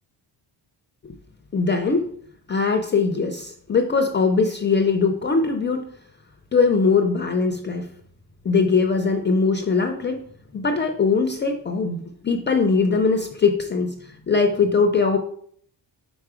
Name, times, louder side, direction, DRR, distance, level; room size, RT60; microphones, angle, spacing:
voice 1, 1.5-2.1 2.5-5.8 6.5-7.9 8.4-10.2 10.5-15.2, left 4 dB, 25° left, 5 dB, 0.3 m, -21 dB
5.0 x 4.8 x 4.8 m, 0.63 s
wide cardioid pair, 170°, 44 cm